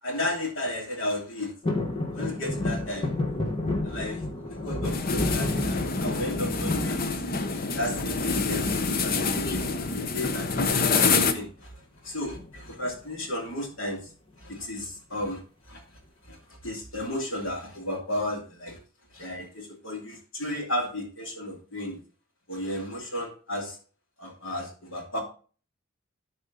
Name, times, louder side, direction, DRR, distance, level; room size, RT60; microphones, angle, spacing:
voice 1, 0.0-1.5 2.1-3.1 3.8-7.2 7.5-11.7 12.0-14.1 14.4-15.4 15.7-15.8 16.2-18.8 19.1-22.0 22.5-23.8 24.2-25.2, left 1 dB, 80° left, 1 dB, 2.9 m, -34 dB
sound 1, 1.6-7.8 8.2-8.9 10.1-10.6 10.8-10.9 11.2-11.5 12.3-13.2 13.7-13.8, left 2 dB, 25° left, 1.4 m, -31 dB
sound 2, 4.8-11.3, left 4 dB, 45° left, 0.8 m, -27 dB
12.0 x 4.3 x 4.0 m, 0.39 s
head